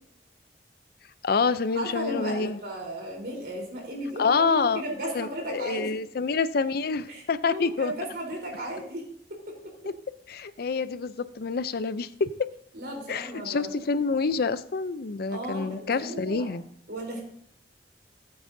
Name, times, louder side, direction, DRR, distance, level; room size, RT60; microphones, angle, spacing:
voice 1, 1.2-2.6 4.2-4.8 5.1-7.9 10.3-12.3 13.1-16.6, left 4 dB, 60° left, 14 dB, 0.5 m, -27 dB
voice 2, 1.7-5.9 7.1-9.0 9.3-9.5 12.7-13.7 15.3-16.5 16.9-17.2, right 1 dB, 60° right, 0 dB, 3.7 m, -35 dB
17.0 x 8.7 x 2.7 m, 0.64 s
head